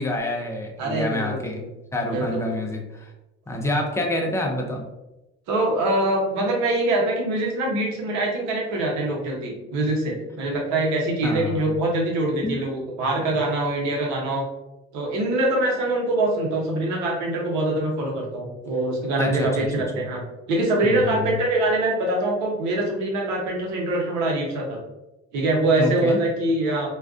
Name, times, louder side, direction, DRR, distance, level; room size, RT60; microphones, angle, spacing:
voice 1, 0.0-1.6 1.9-3.1 3.5-4.8 11.2-11.7 12.4-12.6 19.2-19.7 20.8-21.3 25.8-26.2, left 1 dB, 10° left, 1 dB, 0.6 m, -27 dB
voice 2, 0.8-1.5 2.1-2.5 5.5-14.4 14.9-20.2 20.5-24.8 25.3-26.9, right 2 dB, 70° right, -1 dB, 0.9 m, -24 dB
2.4 x 2.2 x 2.4 m, 0.97 s
supercardioid pair, 75°, 30 cm